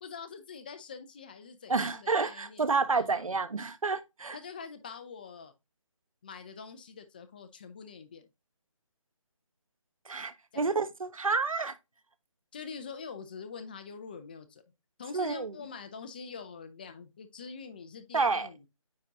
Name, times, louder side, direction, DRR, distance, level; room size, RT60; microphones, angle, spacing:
voice 1, 0.0-3.3 4.3-5.5 6.2-8.3 10.5-10.7 12.5-14.6 15.0-18.7, left 5 dB, 15° left, 0.6 m, -45 dB
voice 2, 1.7-4.4 10.0-11.7 15.1-15.5 18.1-18.5, right 4 dB, 85° right, 1.3 m, -29 dB
9.4 x 3.9 x 2.9 m
hypercardioid pair, 170°, 17 cm